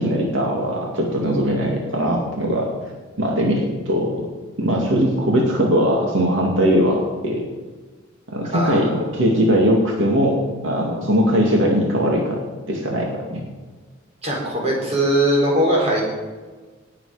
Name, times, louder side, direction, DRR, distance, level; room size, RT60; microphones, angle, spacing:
voice 1, 0.0-2.7 3.2-4.2 4.6-7.4 8.3-10.4 10.6-12.4 12.7-13.4, equal, 80° right, -1 dB, 2.4 m, -20 dB
voice 2, 8.5-8.9 14.2-16.0, right 1 dB, 35° right, -2 dB, 4.1 m, -20 dB
18.0 x 7.5 x 5.0 m, 1.3 s
head